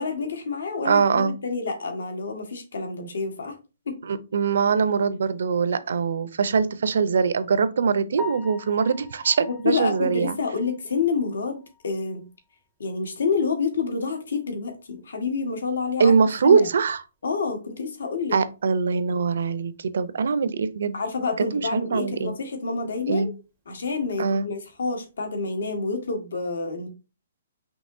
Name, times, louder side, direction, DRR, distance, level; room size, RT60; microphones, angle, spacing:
voice 1, 0.0-3.5 3.9-4.0 9.6-12.2 12.8-16.2 16.4-16.7 17.2-18.4 20.9-23.3 23.7-26.9, left 4 dB, 85° left, 1.4 m, -28 dB
voice 2, 0.8-1.3 4.0-10.4 16.0-17.0 18.3-21.0 21.4-22.4 23.1-23.3 24.2-24.5, right 5 dB, 60° right, 0.4 m, -22 dB
Piano, 8.2-12.1 12.5-12.6 13.1-13.2 13.6-13.7 16.7-16.8 25.3-25.6, left 4 dB, 5° right, 0.4 m, -43 dB
5.4 x 2.9 x 2.6 m
hypercardioid pair, 175°, 0 cm